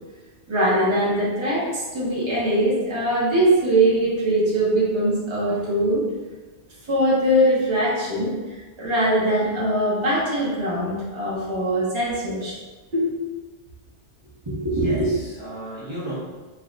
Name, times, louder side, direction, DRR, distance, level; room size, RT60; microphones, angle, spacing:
voice 1, 0.5-6.0 6.9-12.6 14.4-15.1, right 1 dB, 25° right, -8 dB, 1.0 m, -22 dB
voice 2, 12.9-13.3 14.6-16.1, left 1 dB, 45° right, -10 dB, 1.1 m, -30 dB
3.7 x 3.2 x 2.5 m, 1.3 s
omnidirectional pair, 1.2 m